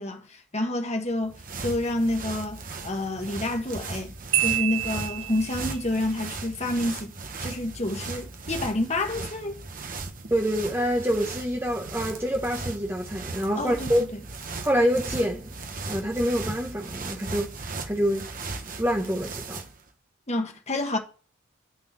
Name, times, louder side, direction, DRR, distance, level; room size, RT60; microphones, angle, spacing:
voice 1, 0.0-4.1 4.4-7.1 7.4-9.5 13.5-13.9 20.3-21.0, left 1 dB, 30° left, 1.5 m, -28 dB
sound 1, 1.1-19.8, right 3 dB, 40° right, 1.1 m, -37 dB
Marimba xylophone, 4.3-5.8, right 12 dB, 75° right, 1.8 m, -27 dB
voice 2, 10.3-14.0 14.6-15.5 15.9-17.5 17.9-18.3 18.8-19.6, equal, 10° right, 1.0 m, -26 dB
9.5 x 4.3 x 7.4 m
head